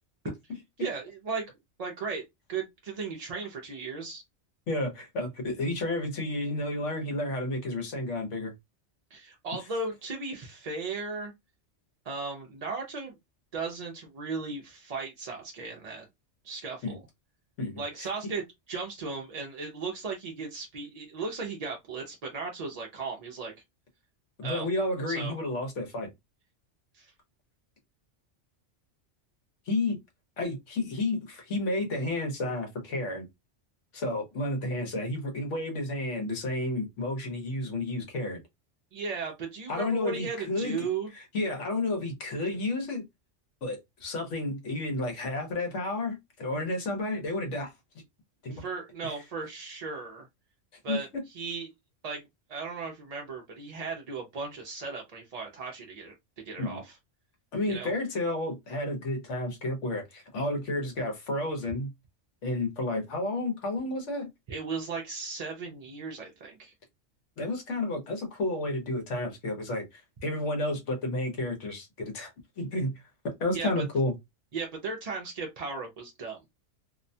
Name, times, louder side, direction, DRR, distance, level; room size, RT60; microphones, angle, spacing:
voice 1, 0.8-1.5 1.8-2.2 2.5-4.2 9.1-11.3 12.1-13.1 13.5-16.1 16.4-17.0 17.8-23.5 24.4-24.7 25.1-25.3 26.9-27.1 38.9-41.1 48.5-50.3 50.8-51.7 52.0-52.2 52.5-56.1 56.4-57.0 57.7-57.9 64.5-66.7 73.5-73.7 74.5-76.4, right 4 dB, 50° right, 0.5 m, -36 dB
voice 2, 4.7-8.5 16.8-17.0 17.6-17.8 24.4-26.1 29.7-30.0 30.4-33.3 33.9-38.4 39.7-40.9 41.1-43.0 43.6-47.7 48.4-48.6 50.9-51.2 56.6-56.8 57.5-61.9 62.4-64.3 67.4-72.3 72.6-72.9 73.4-74.1, left 2 dB, 75° left, 1.2 m, -31 dB
2.7 x 2.1 x 2.6 m
omnidirectional pair, 1.2 m